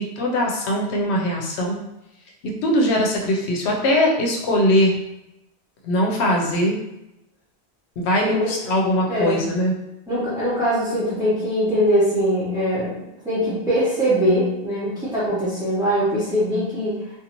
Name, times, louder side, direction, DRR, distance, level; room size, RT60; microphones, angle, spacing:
voice 1, 0.0-1.8 2.4-5.0 5.8-6.8 8.0-9.7, equal, 85° left, 0 dB, 0.9 m, -21 dB
voice 2, 8.2-8.5 9.1-9.4 10.1-12.9 13.2-17.0, equal, 5° right, -13 dB, 0.8 m, -22 dB
2.6 x 2.4 x 2.9 m, 0.90 s
omnidirectional pair, 1.1 m